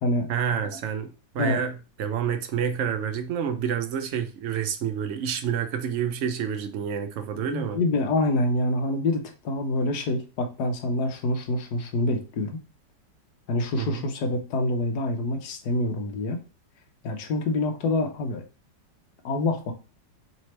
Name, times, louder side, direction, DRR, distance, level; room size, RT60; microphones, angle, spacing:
voice 1, 0.3-7.8 13.8-14.0, right 8 dB, 80° right, 0.6 m, -28 dB
voice 2, 7.3-12.6 13.5-16.4 17.0-18.4 19.2-19.7, left 2 dB, 65° left, 1.3 m, -26 dB
3.4 x 3.2 x 4.2 m
omnidirectional pair, 1.9 m